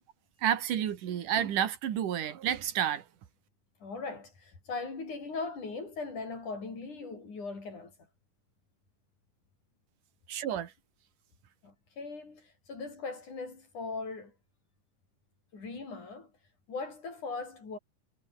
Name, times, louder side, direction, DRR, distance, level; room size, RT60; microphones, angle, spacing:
voice 1, 0.4-3.1 10.3-10.7, right 10 dB, 85° right, 3.5 m, -30 dB
voice 2, 3.8-7.9 11.6-14.3 15.5-16.3 16.7-17.8, left 4 dB, 75° left, 8.4 m, -39 dB
omnidirectional pair, 3.6 m